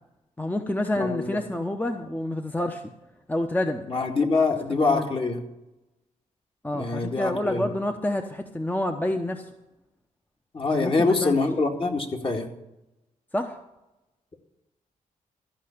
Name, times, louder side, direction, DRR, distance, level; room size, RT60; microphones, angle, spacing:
voice 1, 0.4-2.8 3.3-3.9 4.9-5.1 6.6-9.5 10.7-11.4 13.3-13.6, left 1 dB, 10° left, 5 dB, 0.9 m, -28 dB
voice 2, 1.0-1.4 3.9-5.4 6.7-7.7 10.5-12.5, left 3 dB, 40° left, 3 dB, 2.0 m, -24 dB
14.0 x 5.6 x 8.6 m, 0.95 s
cardioid pair, 70°, 14 cm